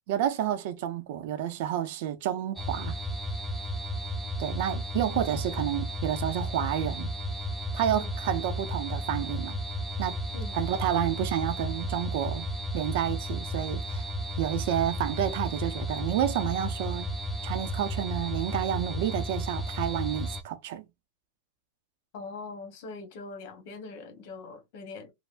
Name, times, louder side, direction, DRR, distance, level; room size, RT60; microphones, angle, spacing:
voice 1, 0.1-3.0 4.4-7.1 7.7-9.6 10.0-10.2 10.5-12.5 12.7-14.1 14.4-17.1 17.4-20.8, right 11 dB, 60° right, 0.6 m, -30 dB
sound 1, 2.6-20.4, equal, 5° right, 0.5 m, -33 dB
voice 2, 22.1-25.1, left 3 dB, 60° left, 1.1 m, -42 dB
3.3 x 2.1 x 2.5 m
hypercardioid pair, 120°, 0 cm